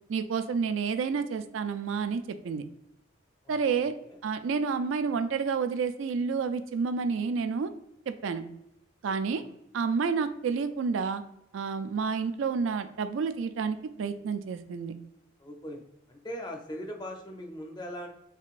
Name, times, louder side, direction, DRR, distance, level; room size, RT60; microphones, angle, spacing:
voice 1, 0.1-2.6 3.5-3.9 4.2-7.7 8.1-8.4 9.0-9.4 9.7-11.2 11.5-14.9, right 5 dB, 75° right, 10 dB, 0.3 m, -29 dB
voice 2, 3.4-4.2 9.4-9.5 15.4-15.8 16.1-18.1, equal, 20° left, 2 dB, 0.5 m, -40 dB
3.7 x 3.3 x 2.4 m, 0.82 s
head